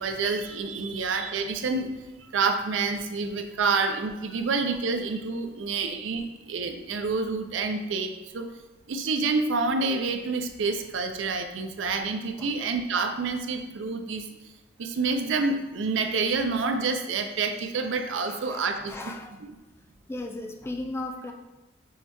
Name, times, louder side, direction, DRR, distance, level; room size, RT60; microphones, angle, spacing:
voice 1, 0.0-1.9 2.3-8.5 8.9-14.2 14.8-18.9, right 4 dB, 85° right, 6 dB, 0.4 m, -28 dB
voice 2, 18.3-19.4 20.1-21.3, left 2 dB, 15° left, 3 dB, 0.3 m, -36 dB
6.3 x 2.2 x 2.9 m, 1.0 s
head